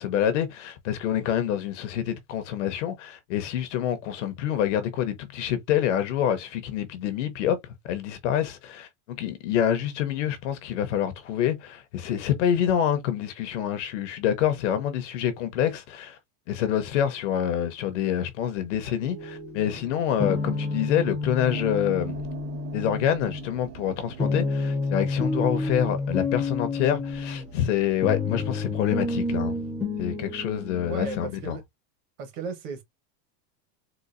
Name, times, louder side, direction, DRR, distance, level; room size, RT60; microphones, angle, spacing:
voice 1, 0.0-7.6 7.8-16.2 16.5-22.2 22.7-29.6 30.0-31.6, left 10 dB, 45° left, 0.7 m, -27 dB
sound 1, 19.0-31.3, left 3 dB, ahead, 0.5 m, -30 dB
sound 2, 21.4-28.9, right 11 dB, 85° right, 1.9 m, -45 dB
voice 2, 30.9-31.6 32.2-32.8, right 5 dB, 45° right, 1.0 m, -35 dB
3.9 x 2.3 x 2.4 m
supercardioid pair, 175°, 50 cm